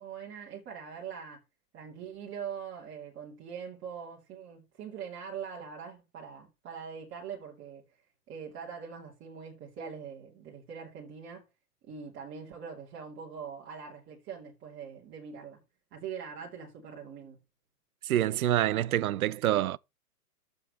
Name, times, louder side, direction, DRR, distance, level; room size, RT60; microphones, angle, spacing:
voice 1, 0.0-1.4 1.7-7.8 8.3-11.4 11.8-15.6 15.9-17.4, right 7 dB, 25° right, 2.6 m, -42 dB
voice 2, 18.0-19.8, right 12 dB, 65° right, 0.5 m, -26 dB
8.3 x 7.0 x 4.1 m
figure-of-eight pair, 115°, 47 cm